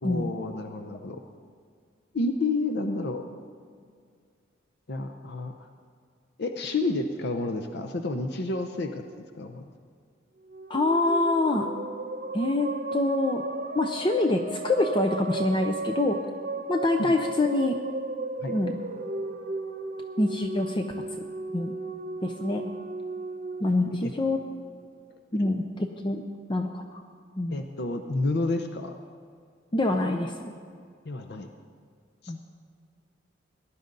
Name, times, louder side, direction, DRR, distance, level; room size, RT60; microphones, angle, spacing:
voice 1, 0.0-1.2 2.1-3.2 4.9-5.7 6.4-9.6 17.0-17.1 18.4-18.6 23.9-24.1 25.3-25.5 27.5-29.0 31.0-31.5 32.2-32.4, left 2 dB, 60° left, 6 dB, 0.7 m, -30 dB
sound 1, 10.4-24.9, right 2 dB, 50° right, 0.7 m, -35 dB
voice 2, 10.7-11.7 12.3-13.4 13.7-16.2 16.7-17.8 18.5-18.8 20.2-20.9 21.2-21.3 21.5-21.7 22.2-22.7 23.6-24.4 25.3-26.2 26.5-27.0 27.4-27.6 29.7-30.5 32.3-32.4, left 2 dB, 25° left, 4 dB, 0.6 m, -25 dB
19.0 x 11.0 x 3.9 m, 2.1 s
head